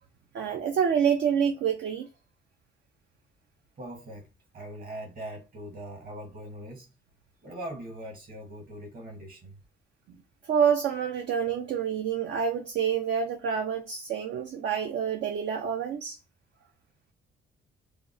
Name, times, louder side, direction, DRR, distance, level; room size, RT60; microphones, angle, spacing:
voice 1, 0.3-2.1 10.4-16.2, right 7 dB, 65° right, 0.5 m, -27 dB
voice 2, 3.8-4.3 4.5-6.9 7.4-9.6, right 1 dB, 50° right, 1.4 m, -41 dB
3.4 x 2.0 x 2.5 m
cardioid pair, 90°, 20 cm